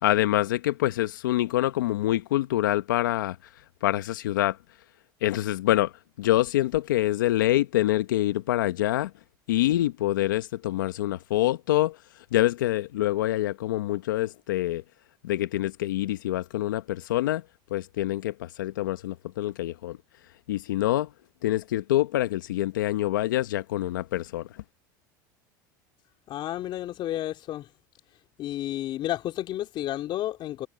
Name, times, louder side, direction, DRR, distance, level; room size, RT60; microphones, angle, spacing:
voice 1, 0.0-3.4 3.8-4.6 5.2-5.9 6.2-9.1 9.5-12.0 12.3-14.8 15.2-17.4 17.7-20.0 20.5-21.1 21.4-24.5, left 15 dB, 90° left, 1.0 m, -26 dB
voice 2, 26.3-27.7 28.4-30.7, left 13 dB, 50° left, 3.4 m, -31 dB
supercardioid pair, 95°, 10 cm